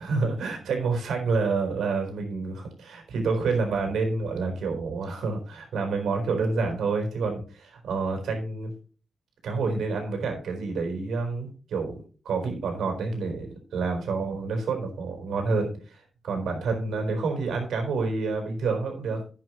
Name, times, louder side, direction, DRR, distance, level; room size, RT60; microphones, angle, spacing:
voice 1, 0.0-8.7 9.4-19.2, right 4 dB, 85° right, 3 dB, 4.3 m, -28 dB
11.5 x 8.9 x 3.1 m, 0.37 s
cardioid pair, 90°, 0 cm